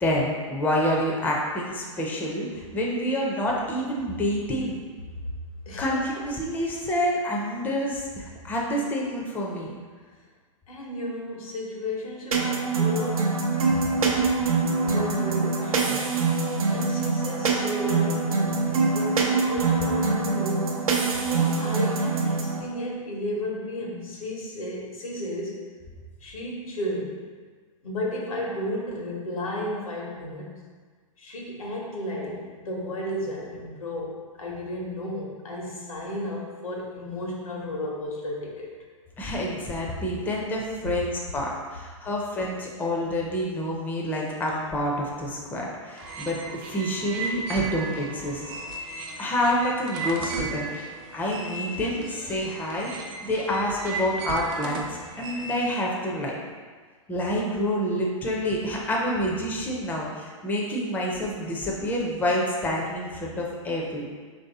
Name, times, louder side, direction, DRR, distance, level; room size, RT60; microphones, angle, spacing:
voice 1, 0.0-4.8 5.8-9.7 39.2-48.4 49.2-56.3 57.1-64.1, equal, 10° left, -2 dB, 0.5 m, -28 dB
voice 2, 5.7-6.0 10.7-13.4 14.9-16.1 16.7-20.9 21.3-25.7 26.2-27.2 27.8-30.6 31.2-38.7, left 1 dB, 85° left, -2 dB, 1.0 m, -33 dB
sound 1, 12.3-22.6, right 4 dB, 85° right, 0.6 m, -24 dB
sound 2, 46.0-55.8, right 3 dB, 40° right, 0.6 m, -35 dB
3.1 x 2.7 x 4.0 m, 1.5 s
hypercardioid pair, 125°, 18 cm